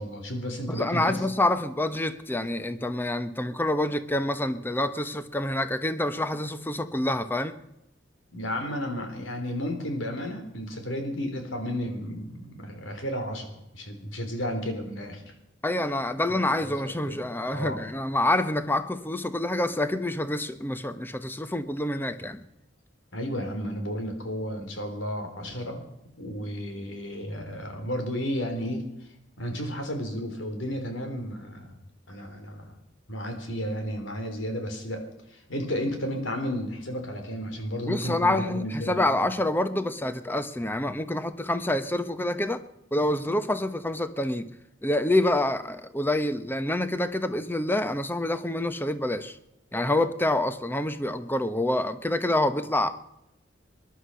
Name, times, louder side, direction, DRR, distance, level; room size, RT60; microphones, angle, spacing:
voice 1, 0.0-1.2 8.3-15.2 16.3-17.2 17.5-17.8 23.1-25.8 26.2-28.8 29.4-31.7 32.1-32.8 33.1-35.0 35.3-39.2, equal, 90° left, 5 dB, 3.8 m, -33 dB
voice 2, 0.7-7.6 15.6-22.4 37.9-42.6 42.9-44.5 44.8-49.4 49.7-52.9, left 1 dB, 10° left, 11 dB, 1.0 m, -27 dB
21.0 x 11.5 x 5.7 m, 0.83 s
head